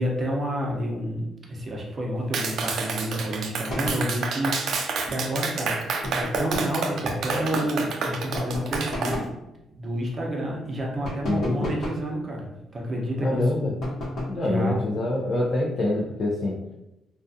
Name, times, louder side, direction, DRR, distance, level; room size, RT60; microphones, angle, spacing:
voice 1, 0.0-5.8 6.1-9.2 9.7-13.4 14.4-14.8, equal, 35° right, -1 dB, 0.7 m, -29 dB
Clapping, 2.3-9.2, right 4 dB, 65° right, 0.3 m, -29 dB
sound 1, 3.7-4.1 6.0-6.8 8.3-9.4 11.0-12.1 13.8-14.4, left 1 dB, 65° left, 1.0 m, -32 dB
voice 2, 11.3-11.7 13.2-13.7 14.3-16.5, left 2 dB, 45° left, -4 dB, 0.4 m, -25 dB
2.4 x 2.3 x 2.6 m, 0.91 s
cardioid pair, 100°, 0 cm